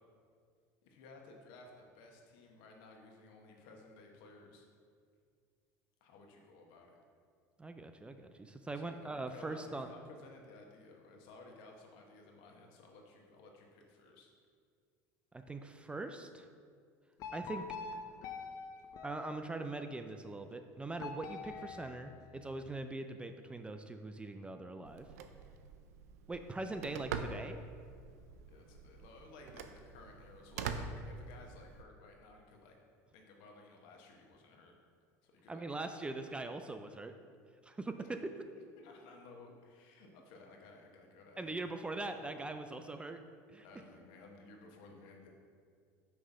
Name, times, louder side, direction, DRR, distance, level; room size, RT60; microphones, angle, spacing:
voice 1, 0.8-4.7 6.0-7.0 8.7-14.3 28.5-32.8 33.1-34.7 35.2-36.3 38.0-38.2 38.5-42.3 43.6-45.3, left 3 dB, 70° left, 1 dB, 1.0 m, -57 dB
voice 2, 7.6-9.9 15.3-16.5 17.3-17.7 19.0-25.1 26.3-27.6 35.5-37.1 37.6-38.3 41.4-43.2 43.5-43.6, right 2 dB, 15° right, 7 dB, 0.3 m, -42 dB
sound 1, 17.2-19.9 21.0-22.7, left 5 dB, 50° left, 0.5 m, -46 dB
Telephone, 24.9-31.8, right 5 dB, 85° right, 0.4 m, -45 dB
5.8 x 3.2 x 5.3 m, 2.1 s
supercardioid pair, 95°, 8 cm